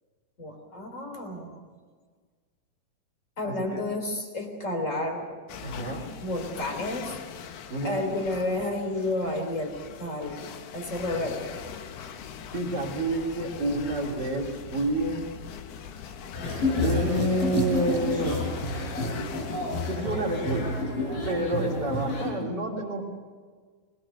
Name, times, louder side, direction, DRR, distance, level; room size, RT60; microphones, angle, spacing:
voice 1, 0.4-1.6 3.4-5.4 6.2-7.1 7.8-10.5 10.7-11.6 21.6-21.8, left 2 dB, 20° left, 4 dB, 3.3 m, -31 dB
voice 2, 3.4-3.8 5.6-6.0 7.7-8.1 12.5-15.3 16.7-18.4 19.8-20.7 21.2-23.0, right 1 dB, 30° right, -2 dB, 3.2 m, -29 dB
sound 1, 5.5-20.8, left 7 dB, 85° left, 3.2 m, -42 dB
sound 2, 16.3-22.3, left 2 dB, 60° left, 8.7 m, -29 dB
22.5 x 20.0 x 6.6 m, 1.5 s
omnidirectional pair, 4.4 m